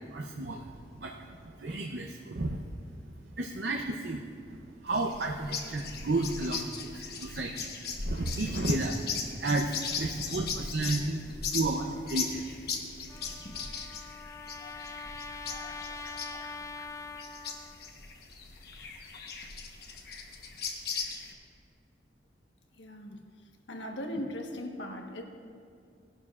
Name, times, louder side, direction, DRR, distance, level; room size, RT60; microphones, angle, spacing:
voice 1, 0.1-2.6 3.4-7.7 8.1-9.0 9.4-11.2 11.5-12.6, right 2 dB, 65° right, 1 dB, 0.7 m, -32 dB
sound 1, 4.9-21.3, left 5 dB, 55° left, 1.1 m, -38 dB
Trumpet, 13.1-17.9, left 4 dB, 15° left, 0.3 m, -43 dB
voice 2, 22.7-23.2 23.7-25.2, left 1 dB, 90° left, 2 dB, 1.2 m, -38 dB
19.0 x 11.0 x 2.4 m, 2.4 s
head